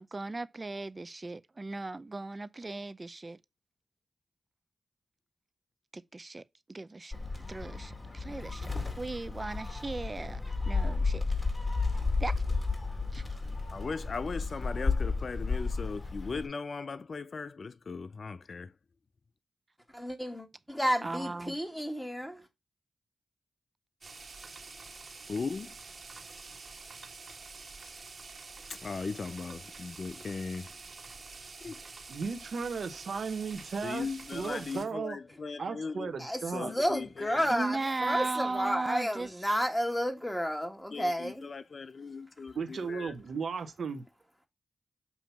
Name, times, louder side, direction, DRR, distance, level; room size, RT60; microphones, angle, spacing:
voice 1, 0.0-3.4 5.9-6.4 6.7-7.1 7.5-8.7 9.0-11.2 12.2-12.4 13.1-13.2 21.0-21.6 37.5-39.6, right 3 dB, 35° right, 0.5 m, -37 dB
Gull seagull, 7.1-16.5, left 4 dB, 30° left, 2.3 m, -32 dB
voice 2, 13.7-18.7 25.3-25.8 28.7-30.7 31.6-31.9 33.8-36.1 36.5-37.5 40.9-43.1, left 4 dB, 60° left, 0.4 m, -38 dB
voice 3, 19.9-22.5 36.2-41.5, equal, 5° left, 1.9 m, -32 dB
sound 1, 24.0-34.9, right 4 dB, 55° right, 1.5 m, -47 dB
voice 4, 32.1-35.2 35.6-36.7 42.5-44.0, right 5 dB, 70° right, 1.0 m, -35 dB
7.1 x 2.9 x 5.7 m
supercardioid pair, 45°, 0 cm